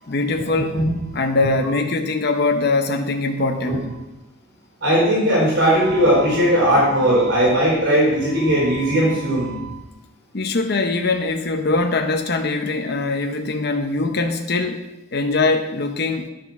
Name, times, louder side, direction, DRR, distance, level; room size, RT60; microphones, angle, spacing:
voice 1, 0.1-0.8 1.1-3.8 10.3-16.3, left 3 dB, 55° left, 4 dB, 0.8 m, -22 dB
voice 2, 4.8-9.7, equal, 65° right, -5 dB, 4.1 m, -18 dB
10.5 x 6.5 x 6.0 m, 0.96 s
head